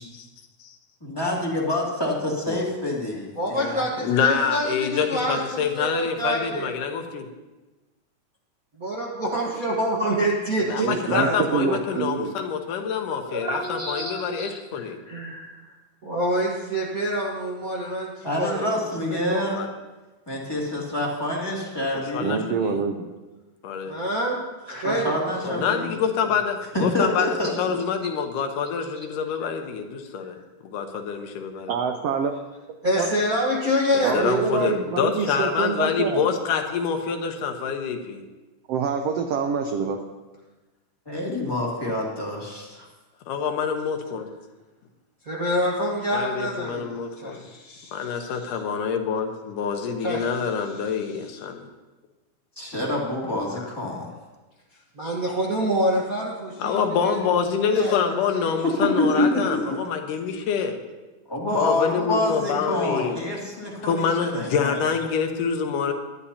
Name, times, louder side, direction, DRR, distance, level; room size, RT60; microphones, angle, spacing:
voice 1, 1.0-4.1 18.2-19.6 20.3-22.4 24.8-25.9 26.7-27.8 41.1-42.9 52.6-54.1 57.8-58.3 58.8-59.8 61.3-64.9, left 1 dB, 10° left, -4 dB, 1.9 m, -27 dB
voice 2, 3.4-6.8 8.8-12.0 13.2-15.7 16.0-18.6 19.1-19.4 23.9-25.6 30.2-30.3 32.8-34.8 45.2-48.4 50.0-50.2 55.0-57.2 57.7-59.8, equal, 45° right, -4 dB, 1.1 m, -27 dB
voice 3, 4.0-7.3 10.6-15.0 19.5-19.7 22.1-22.8 23.6-24.0 25.4-27.3 27.6-30.4 30.6-31.7 34.1-38.2 43.3-44.3 46.1-47.4 47.9-51.7 56.6-60.8 61.5-63.2 63.8-65.9, left 6 dB, 90° left, 5 dB, 2.6 m, -26 dB
voice 4, 10.8-12.3 13.5-14.5 22.2-23.0 29.0-29.1 31.7-32.3 33.0-33.1 34.0-36.3 38.7-40.0, right 5 dB, 80° right, 5 dB, 1.4 m, -26 dB
20.0 x 11.5 x 2.8 m, 1.2 s
omnidirectional pair, 3.6 m